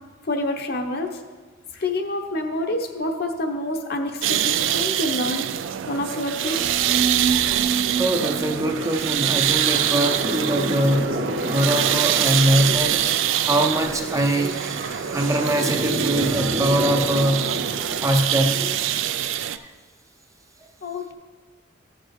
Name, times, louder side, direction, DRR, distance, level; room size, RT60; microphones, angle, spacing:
voice 1, 0.2-1.2 1.7-5.5 5.9-6.8 20.8-21.1, left 1 dB, 55° left, 4 dB, 0.8 m, -27 dB
sound 1, 4.2-19.6, right 11 dB, 80° right, 0.4 m, -24 dB
sound 2, 6.4-18.1, right 2 dB, 55° right, 1.0 m, -30 dB
voice 2, 8.0-17.6 18.0-18.7 19.5-19.7, right 1 dB, 15° right, 5 dB, 0.5 m, -23 dB
14.0 x 6.8 x 3.1 m, 1.4 s
head